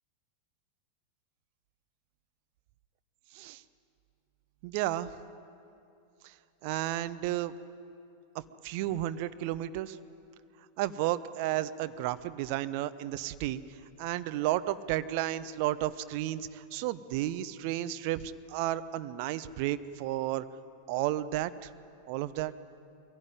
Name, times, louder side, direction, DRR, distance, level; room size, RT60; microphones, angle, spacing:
voice 1, 4.6-5.1 6.2-6.3 6.6-7.5 8.6-10.0 10.8-13.6 14.0-20.4 20.9-21.7 22.1-22.5, right 14 dB, 45° right, 13 dB, 0.8 m, -32 dB
23.0 x 17.0 x 9.6 m, 2.6 s
figure-of-eight pair, 90°, 0 cm